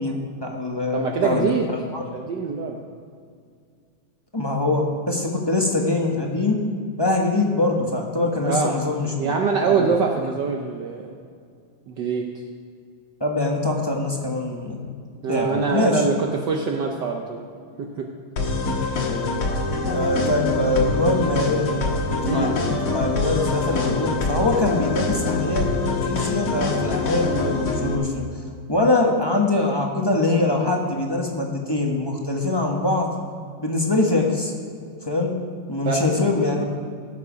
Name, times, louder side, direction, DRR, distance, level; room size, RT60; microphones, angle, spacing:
voice 1, 0.0-2.1 4.3-6.6 7.0-9.9 13.2-14.9 15.3-16.0 18.7-18.8 19.9-21.7 22.1-28.2 28.7-33.1 33.6-34.5 34.8-35.3 35.7-36.7, left 2 dB, 15° left, 0 dB, 1.0 m, -23 dB
voice 2, 0.9-1.7 2.1-2.8 8.4-8.7 9.2-11.1 11.9-12.3 15.2-17.4 17.8-18.1 22.2-22.6 35.8-36.7, right 5 dB, 65° right, 2 dB, 1.4 m, -24 dB
sound 1, 18.4-27.9, left 3 dB, 60° left, 1.8 m, -25 dB
17.5 x 7.3 x 5.1 m, 2.2 s
omnidirectional pair, 2.2 m